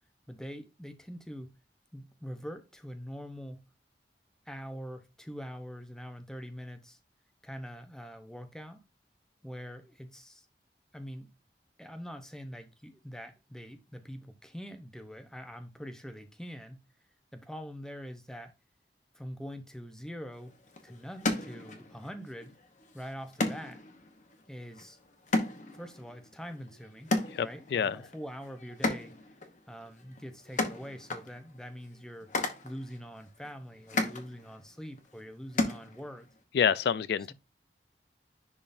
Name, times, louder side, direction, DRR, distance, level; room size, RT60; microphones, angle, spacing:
voice 1, 0.3-1.5 1.9-3.6 4.5-7.0 7.4-8.8 9.4-10.5 10.9-11.3 11.8-16.8 17.3-18.5 19.1-20.6 20.8-22.6 22.9-23.8 24.5-25.0 25.7-27.1 27.4-29.1 29.7-32.3 32.6-36.3, equal, 5° left, 0.7 m, -44 dB
sound 1, 20.3-36.4, left 2 dB, 45° left, 1.0 m, -36 dB
voice 2, 27.3-28.0 36.5-37.3, left 7 dB, 65° left, 0.3 m, -28 dB
10.5 x 3.8 x 2.6 m
head